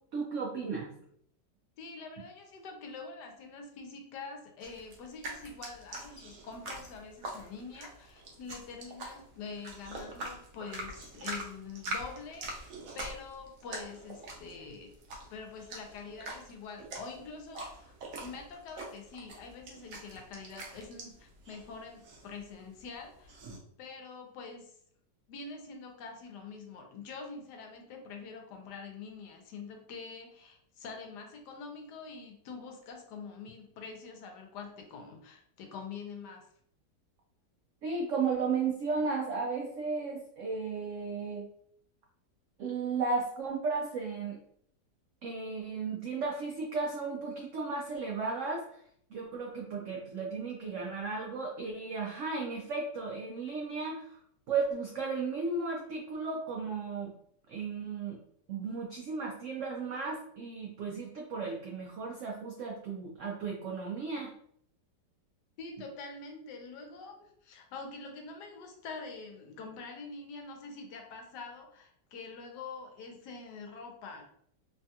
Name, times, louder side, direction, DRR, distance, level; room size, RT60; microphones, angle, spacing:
voice 1, 0.1-0.9 37.8-41.5 42.6-44.4 45.2-48.6 49.1-54.2 54.5-57.1 57.5-58.2 58.5-64.3, right 4 dB, 85° right, -1 dB, 0.6 m, -34 dB
voice 2, 1.8-14.9 15.3-17.9 18.2-23.4 23.8-24.7 25.3-36.5 65.6-74.2, left 4 dB, 75° left, 3 dB, 1.2 m, -45 dB
sound 1, 4.6-23.6, right 1 dB, 60° right, 0.9 m, -44 dB
3.2 x 2.3 x 2.7 m, 0.67 s
omnidirectional pair, 1.9 m